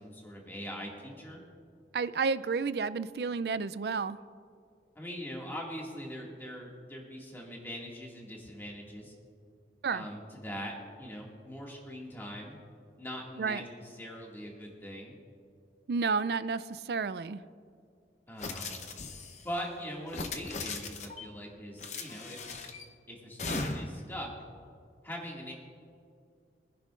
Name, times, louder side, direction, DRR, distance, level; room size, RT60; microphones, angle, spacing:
voice 1, 0.0-1.4 5.0-9.1 9.9-12.6 13.0-15.2 18.3-18.7 19.4-22.7 23.1-24.3 25.0-25.5, equal, 10° left, -2 dB, 2.1 m, -42 dB
voice 2, 1.9-4.2 9.8-10.0 13.4-13.6 15.9-17.4, right 5 dB, 65° right, 15 dB, 0.4 m, -31 dB
sound 1, 18.4-19.5 20.1-21.3 21.8-22.8 23.4-24.0, left 3 dB, 40° left, 0.8 m, -38 dB
24.0 x 10.5 x 2.5 m, 2.3 s
head